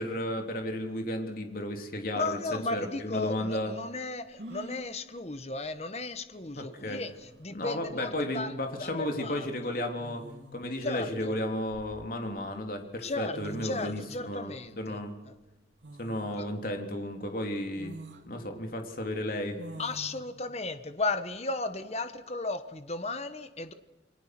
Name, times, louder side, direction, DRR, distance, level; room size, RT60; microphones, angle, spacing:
voice 1, 0.0-3.7 6.5-7.0 7.5-10.2 10.5-15.2 16.0-18.0 18.3-19.6, left 1 dB, 50° left, 4 dB, 3.3 m, -33 dB
voice 2, 2.1-8.5 8.8-9.5 10.8-11.4 13.0-15.0 15.3-15.4 16.4-16.5 19.8-23.7, left 3 dB, 35° left, 10 dB, 1.3 m, -35 dB
sound 1, 4.4-4.9 6.4-6.5 6.8-7.3 8.7-8.9 10.0-10.7 11.4-12.4 13.1-13.2 13.3-14.2 15.8-16.4 16.9-17.0 17.7-18.2 19.6-20.2, right 1 dB, 90° right, 3.0 m, -46 dB
29.0 x 22.5 x 6.1 m, 1.1 s
head